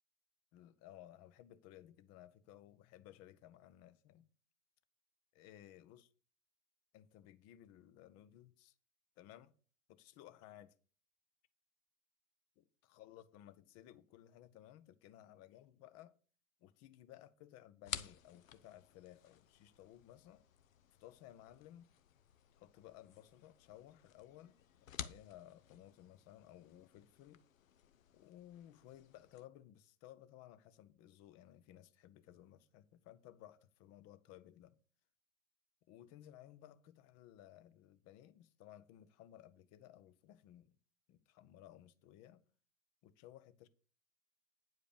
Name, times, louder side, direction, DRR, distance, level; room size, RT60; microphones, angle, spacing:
voice 1, 0.5-4.2 5.3-6.1 6.9-8.7 9.2-9.5 9.9-10.7 12.6-16.2 16.6-20.4 21.0-21.9 22.5-24.6 25.0-27.4 28.1-34.8 35.9-40.7 41.1-42.4 43.0-43.7, left 12 dB, 35° left, 0.8 m, -58 dB
sound 1, 17.8-29.5, left 10 dB, 70° left, 0.8 m, -53 dB
9.4 x 4.9 x 6.8 m
figure-of-eight pair, 95°, 41 cm